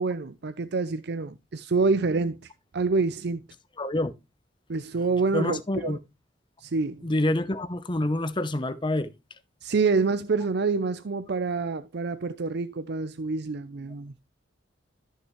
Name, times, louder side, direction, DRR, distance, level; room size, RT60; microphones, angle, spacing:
voice 1, 0.0-3.4 4.7-6.0 6.6-7.1 9.6-14.1, right 4 dB, 60° right, 0.5 m, -27 dB
voice 2, 3.8-4.1 5.3-6.0 7.0-9.1, left 1 dB, 25° left, 0.8 m, -27 dB
13.0 x 6.5 x 3.1 m
head